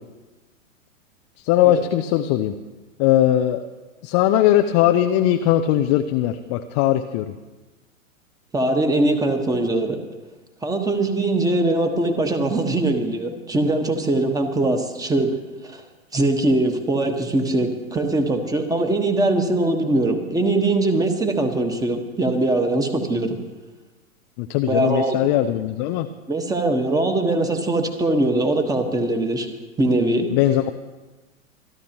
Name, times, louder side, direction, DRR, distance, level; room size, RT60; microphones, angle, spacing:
voice 1, 1.4-2.5 3.0-3.6 4.0-7.3 24.4-26.1 30.3-30.7, left 12 dB, 25° left, 6 dB, 0.4 m, -19 dB
voice 2, 8.5-10.0 10.6-15.3 15.6-15.8 16.1-23.4 24.7-25.2 26.3-29.5 29.8-30.3, right 2 dB, 10° right, 6 dB, 1.4 m, -21 dB
26.5 x 12.0 x 3.0 m, 1.2 s
hypercardioid pair, 110°, 41 cm